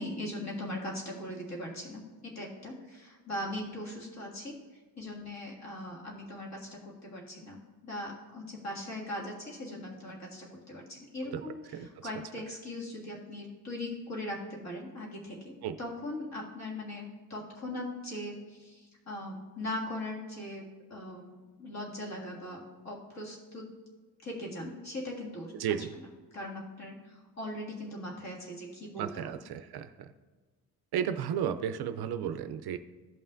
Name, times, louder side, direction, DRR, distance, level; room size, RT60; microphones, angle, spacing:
voice 1, 0.0-4.6 5.0-23.7 24.2-25.8 26.3-29.3, left 1 dB, 40° left, -3 dB, 2.0 m, -40 dB
voice 2, 25.6-25.9 29.0-30.1 30.9-32.8, right 9 dB, 65° right, 10 dB, 0.5 m, -33 dB
15.0 x 5.5 x 2.5 m, 1.4 s
cardioid pair, 165°, 42 cm